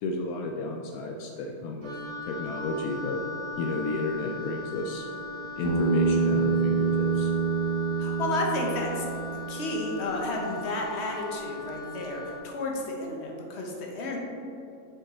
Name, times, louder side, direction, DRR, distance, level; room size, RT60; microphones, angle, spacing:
voice 1, 0.0-2.0 2.3-3.2 3.6-5.1 5.6-7.3, left 2 dB, 80° left, 2 dB, 1.1 m, -32 dB
Wind instrument woodwind instrument, 1.8-12.5, left 2 dB, 50° right, 1.1 m, -39 dB
Bass guitar, 5.6-10.0, right 5 dB, 25° right, 0.8 m, -26 dB
voice 2, 8.0-9.0 9.3-14.2, left 2 dB, 50° left, 0 dB, 1.2 m, -32 dB
6.5 x 5.6 x 4.2 m, 2.7 s
omnidirectional pair, 1.6 m